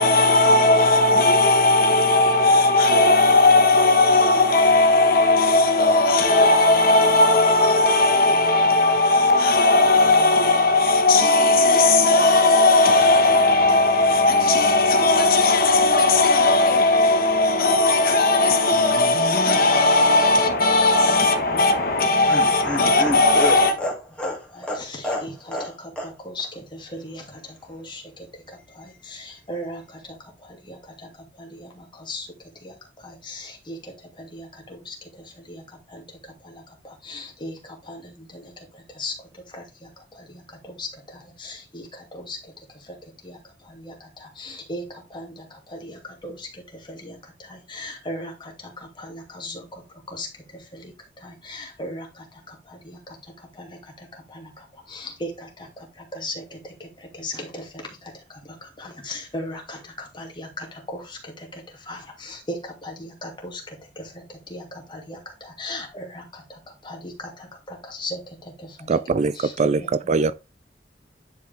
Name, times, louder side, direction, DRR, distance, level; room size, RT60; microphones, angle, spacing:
voice 1, 0.0-23.7, left 2 dB, 55° left, 1.3 m, -17 dB
Laughter, 21.7-25.7 26.0-26.1 26.4-26.5, equal, 5° left, 2.2 m, -29 dB
voice 2, 24.5-50.9 51.2-69.0 69.3-69.7 70.0-70.1, left 1 dB, 25° left, 2.6 m, -38 dB
voice 3, 68.9-69.8 70.1-70.4, right 4 dB, 40° right, 0.4 m, -22 dB
10.5 x 4.9 x 3.5 m
head